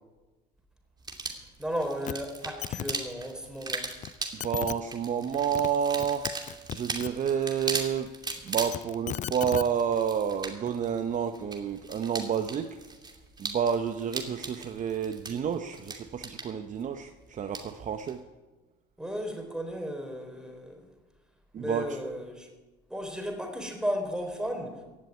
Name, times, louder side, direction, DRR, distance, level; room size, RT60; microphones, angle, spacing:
sound 1, 1.0-18.2, right 3 dB, 20° right, 2.7 m, -39 dB
voice 1, 1.6-3.9 19.0-20.9 21.6-22.5 22.9-24.8, equal, 5° right, 4 dB, 4.0 m, -34 dB
sound 2, 2.1-2.2 2.4-2.9 4.0-4.1 4.4-4.8 5.3-5.7 5.9-7.1 8.5-9.7 10.7-10.8, left 11 dB, 40° left, 0.5 m, -35 dB
voice 2, 4.4-6.3 6.7-8.1 8.4-12.8 13.4-18.2 21.5-21.9, right 8 dB, 40° right, 8 dB, 0.9 m, -29 dB
15.5 x 7.6 x 9.6 m, 1.2 s
supercardioid pair, 85°, 20 cm